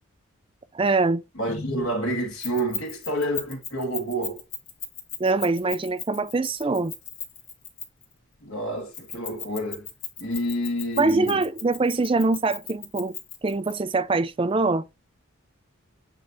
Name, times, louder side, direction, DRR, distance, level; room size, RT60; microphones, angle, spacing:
voice 1, 0.7-1.2 5.2-6.9 11.0-13.1 13.4-14.8, right 3 dB, 25° right, 0.4 m, -23 dB
voice 2, 1.4-4.4 8.4-9.9 10.2-11.4, right 1 dB, 85° left, 2.5 m, -28 dB
Keys jangling, 2.4-8.1 8.9-13.7, left 6 dB, 60° left, 2.3 m, -36 dB
8.9 x 3.3 x 4.0 m
head